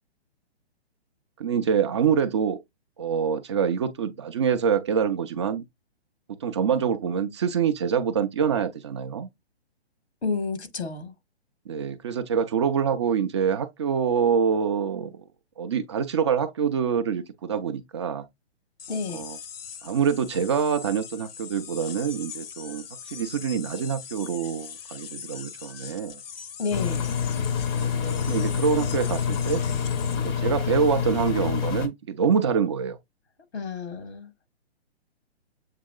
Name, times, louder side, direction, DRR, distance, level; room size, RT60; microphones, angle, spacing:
voice 1, 1.4-2.6 3.0-5.6 6.3-9.3 11.7-15.1 15.6-18.3 19.1-19.4 19.8-22.8 23.1-26.2 27.8-29.6 30.2-33.0, right 7 dB, 30° right, 0.4 m, -25 dB
voice 2, 10.2-11.1 18.9-19.2 26.6-27.2 33.5-34.3, left 4 dB, 85° left, 1.5 m, -30 dB
sound 1, 18.8-30.3, left 8 dB, 60° left, 0.8 m, -41 dB
Engine, 26.7-31.9, left 7 dB, 20° left, 0.6 m, -27 dB
7.4 x 2.8 x 2.2 m
hypercardioid pair, 135°, 32 cm